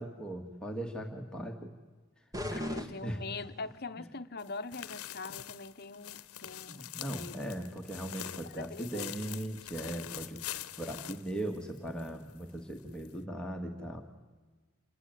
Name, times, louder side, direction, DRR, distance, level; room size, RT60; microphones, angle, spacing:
voice 1, 0.0-1.7 2.5-3.2 6.7-14.0, right 1 dB, 5° left, 1 dB, 1.8 m, -39 dB
sound 1, 2.3-3.8, equal, 15° right, 1.5 m, -39 dB
voice 2, 2.5-7.5 8.4-9.1, left 3 dB, 45° left, 10 dB, 1.0 m, -43 dB
sound 2, 4.4-12.1 12.4-12.5 13.0-13.1, left 11 dB, 80° left, 0.9 m, -44 dB
28.0 x 19.5 x 9.2 m, 1.3 s
head